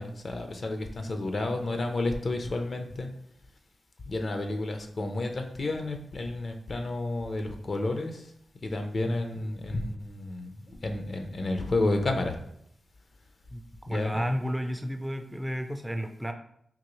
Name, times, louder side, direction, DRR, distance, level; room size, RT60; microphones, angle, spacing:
voice 1, 0.0-3.1 4.1-8.3 8.6-12.4 13.9-14.2, left 2 dB, 50° left, 5 dB, 0.6 m, -31 dB
voice 2, 13.9-16.3, equal, 10° right, 5 dB, 0.4 m, -32 dB
3.6 x 2.6 x 3.1 m, 0.72 s
cardioid pair, 65°, 0 cm